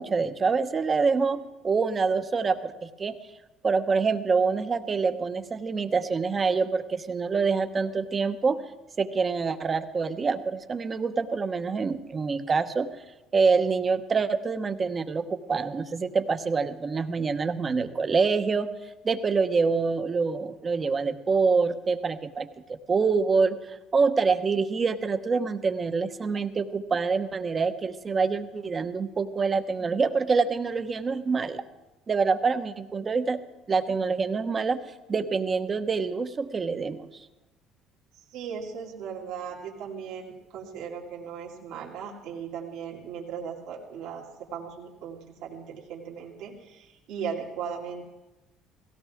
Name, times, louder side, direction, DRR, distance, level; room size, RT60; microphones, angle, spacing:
voice 1, 0.0-3.2 3.6-8.6 9.0-12.9 13.3-18.7 19.0-22.5 22.9-31.6 32.1-33.4 33.7-34.8 35.1-37.3, right 4 dB, 35° right, 9 dB, 1.0 m, -26 dB
voice 2, 38.1-48.0, right 7 dB, 75° right, -2 dB, 2.5 m, -37 dB
17.0 x 16.5 x 3.6 m, 1.0 s
supercardioid pair, 80°, 0 cm